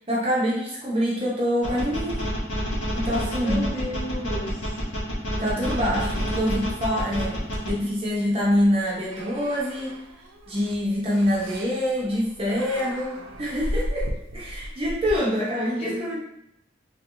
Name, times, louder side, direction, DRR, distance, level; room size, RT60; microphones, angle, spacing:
voice 1, 0.1-2.3 2.9-3.7 5.4-7.4 7.6-10.0 10.5-14.1 14.3-16.2, equal, 30° right, -5 dB, 0.6 m, -25 dB
sound 1, 1.6-7.7, equal, 80° left, 0.8 m, -28 dB
voice 2, 3.2-4.7 15.6-16.2, equal, 30° left, -7 dB, 0.9 m, -34 dB
sound 2, 5.6-15.2, equal, 90° right, 0.4 m, -36 dB
3.0 x 2.9 x 2.5 m, 0.79 s
head